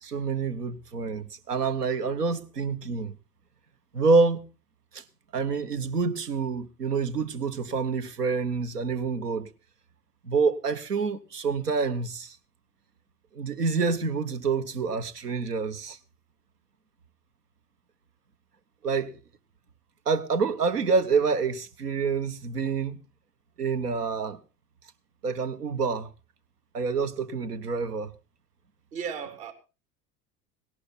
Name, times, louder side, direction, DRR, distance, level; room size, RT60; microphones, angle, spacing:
voice 1, 0.0-3.1 3.9-4.4 4.9-5.0 5.3-9.5 10.3-12.4 13.3-16.0 18.8-19.1 20.1-23.0 23.6-24.4 25.2-26.1 26.7-28.1, right 4 dB, 85° right, 1.2 m, -27 dB
voice 2, 28.9-29.5, right 7 dB, 60° right, 3.1 m, -37 dB
17.5 x 11.5 x 4.2 m
figure-of-eight pair, 70°, 46 cm